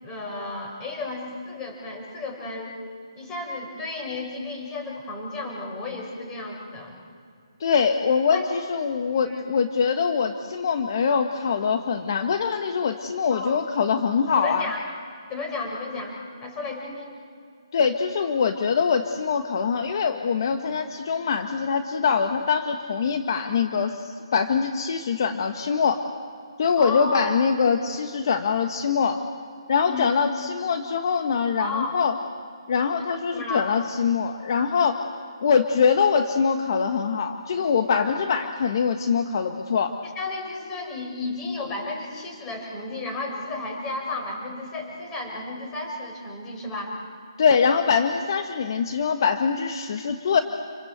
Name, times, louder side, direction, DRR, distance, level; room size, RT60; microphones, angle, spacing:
voice 1, 0.0-2.8 3.1-7.0 8.3-8.5 9.2-9.4 13.3-13.6 14.4-14.8 15.3-17.1 26.8-27.3 29.9-30.1 31.6-32.0 33.3-33.7 38.4-38.5 40.0-47.0, left 3 dB, 20° left, 1 dB, 6.5 m, -33 dB
voice 2, 7.6-14.7 17.7-26.0 26.6-29.2 29.7-32.2 32.7-35.0 35.4-39.9 47.4-50.4, left 6 dB, 50° left, 6 dB, 1.5 m, -23 dB
28.5 x 24.5 x 8.1 m, 2.3 s
hypercardioid pair, 150°, 3 cm